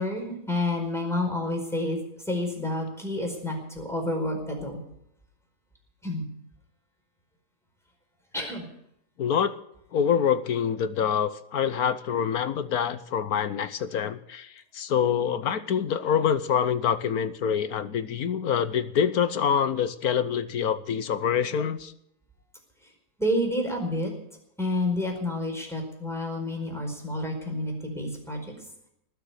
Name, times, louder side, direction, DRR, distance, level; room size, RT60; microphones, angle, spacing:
voice 1, 0.0-2.0 2.3-4.8 6.0-6.3 8.3-8.7 23.2-24.1 24.6-28.5, left 1 dB, ahead, 1 dB, 4.7 m, -29 dB
voice 2, 9.2-9.5 9.9-21.9, left 8 dB, 65° left, 13 dB, 1.3 m, -26 dB
19.5 x 7.0 x 9.8 m, 0.77 s
omnidirectional pair, 1.8 m